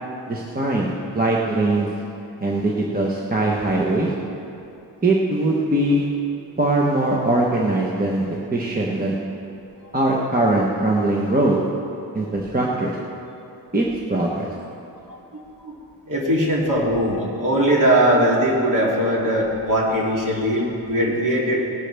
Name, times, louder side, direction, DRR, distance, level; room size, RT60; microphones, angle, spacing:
voice 1, 0.3-1.9 2.4-4.1 5.0-6.1 6.6-9.2 9.9-11.6 12.1-13.0 13.7-14.5, right 2 dB, 20° right, -3 dB, 1.0 m, -21 dB
voice 2, 15.1-15.7 16.1-21.7, equal, 45° right, -4 dB, 2.9 m, -20 dB
18.5 x 11.5 x 3.4 m, 2.7 s
wide cardioid pair, 145°, 43 cm